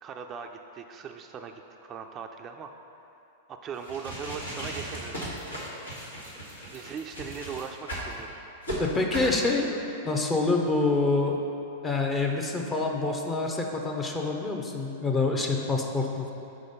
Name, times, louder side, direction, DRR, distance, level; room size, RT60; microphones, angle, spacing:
voice 1, 0.0-2.7 3.5-5.3 6.7-8.3 9.2-9.7, right 6 dB, 30° right, 4 dB, 0.3 m, -39 dB
sound 1, 3.7-8.1 8.6-8.8 9.1-9.3, right 1 dB, 85° left, 1.4 m, -37 dB
voice 2, 8.8-9.8 10.0-11.4 11.8-16.3, left 3 dB, 20° left, 1 dB, 0.6 m, -26 dB
4.9 x 3.9 x 5.4 m, 2.8 s
figure-of-eight pair, 100°, 0 cm